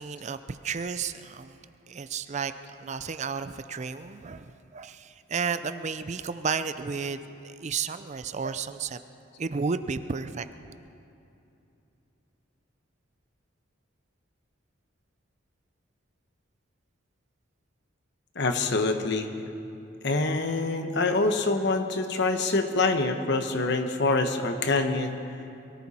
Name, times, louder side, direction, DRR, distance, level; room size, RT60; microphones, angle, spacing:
voice 1, 0.0-1.6 1.9-7.2 7.4-9.0 9.4-10.5, right 5 dB, 35° right, 12 dB, 0.4 m, -32 dB
voice 2, 18.4-19.3 20.0-25.2, left 3 dB, 60° left, 6 dB, 1.1 m, -25 dB
23.0 x 14.0 x 4.2 m, 2.8 s
head